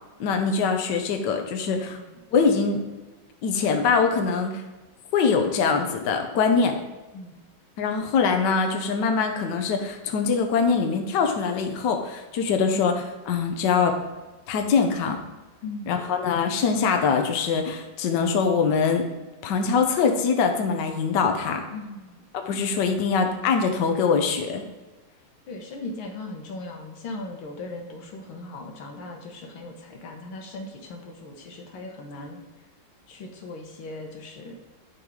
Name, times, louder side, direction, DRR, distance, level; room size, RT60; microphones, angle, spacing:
voice 1, 0.2-2.0 2.3-2.8 3.4-4.6 5.1-6.8 7.8-14.0 14.5-15.2 15.9-19.1 19.4-21.6 22.3-24.6, left 5 dB, 65° left, 5 dB, 1.4 m, -23 dB
voice 2, 1.8-2.2 7.1-7.4 12.7-12.9 15.6-16.1 21.7-22.2 25.5-32.4 33.1-34.6, left 2 dB, 90° left, 2 dB, 1.9 m, -38 dB
10.5 x 3.9 x 4.8 m, 1.2 s
omnidirectional pair, 2.2 m